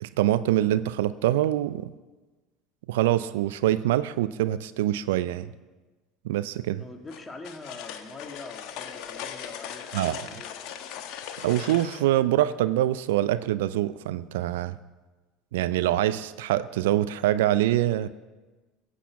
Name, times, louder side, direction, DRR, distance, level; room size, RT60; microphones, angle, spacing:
voice 1, 0.0-1.9 2.9-5.5 6.2-6.8 9.9-10.2 11.4-14.8 15.5-18.1, right 13 dB, 75° right, 15 dB, 0.4 m, -25 dB
voice 2, 6.8-10.6, left 3 dB, 20° left, 4 dB, 2.1 m, -44 dB
sound 1, 7.1-12.1, left 9 dB, 60° left, 1.2 m, -39 dB
16.0 x 8.3 x 7.0 m, 1.2 s
hypercardioid pair, 75°, 0 cm